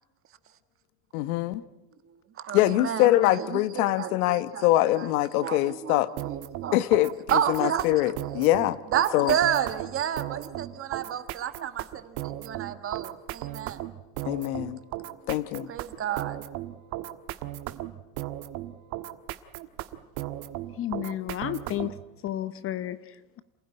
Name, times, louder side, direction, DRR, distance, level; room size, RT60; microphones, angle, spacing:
voice 1, 1.1-1.6 2.5-6.1 6.7-7.1 7.5-8.8 9.1-9.4 14.2-14.8 15.3-15.7, left 16 dB, 80° left, 1.3 m, -23 dB
voice 2, 2.4-5.1 5.3-6.8 7.3-8.1 8.9-13.8 15.7-16.4, right 9 dB, 30° right, 1.5 m, -30 dB
sound 1, 6.2-22.0, right 14 dB, 55° right, 1.5 m, -36 dB
voice 3, 20.8-22.0 22.2-23.4, left 12 dB, 30° left, 0.8 m, -32 dB
28.0 x 16.0 x 10.0 m
cardioid pair, 150°, 42 cm